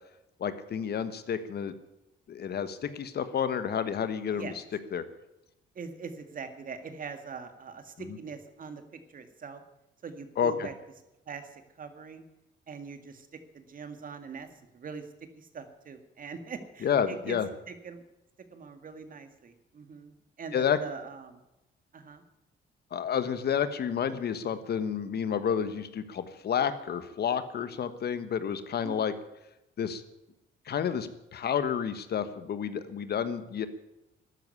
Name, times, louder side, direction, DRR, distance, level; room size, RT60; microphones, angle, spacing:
voice 1, 0.4-1.7 2.3-4.5 4.9-5.0 10.4-10.7 16.8-17.5 20.5-20.8 22.9-29.1 29.8-30.0 30.7-33.7, left 8 dB, 55° left, 11 dB, 1.3 m, -30 dB
voice 2, 5.8-9.6 10.0-10.7 11.3-12.2 12.7-15.1 15.4-17.4 17.7-18.0 18.5-21.4 21.9-22.2 28.8-29.1, right 5 dB, 45° right, 9 dB, 2.0 m, -42 dB
13.0 x 10.0 x 9.7 m, 0.90 s
cardioid pair, 120°, 20 cm